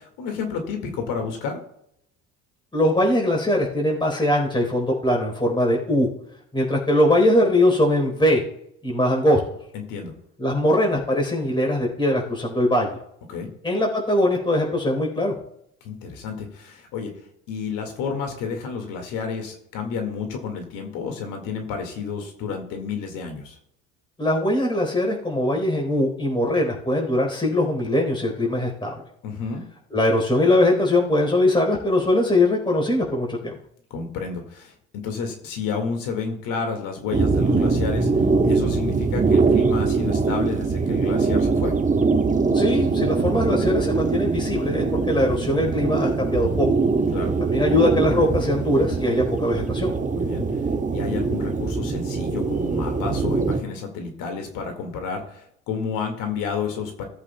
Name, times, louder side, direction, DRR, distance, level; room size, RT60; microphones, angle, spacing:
voice 1, 0.0-1.6 9.7-10.1 13.3-13.5 15.8-17.1 17.5-23.6 29.2-29.6 33.9-41.8 47.1-47.3 50.1-50.5 50.9-57.0, left 5 dB, 65° left, 4 dB, 2.1 m, -30 dB
voice 2, 2.7-6.1 6.5-8.4 8.8-9.4 10.4-12.9 13.6-15.3 24.2-28.9 29.9-33.6 42.5-46.7 47.5-49.9, left 1 dB, 15° left, 0 dB, 4.1 m, -21 dB
sound 1, 37.1-53.6, right 4 dB, 20° right, 1.1 m, -22 dB
18.5 x 8.3 x 2.3 m, 0.74 s
hypercardioid pair, 70°, 35 cm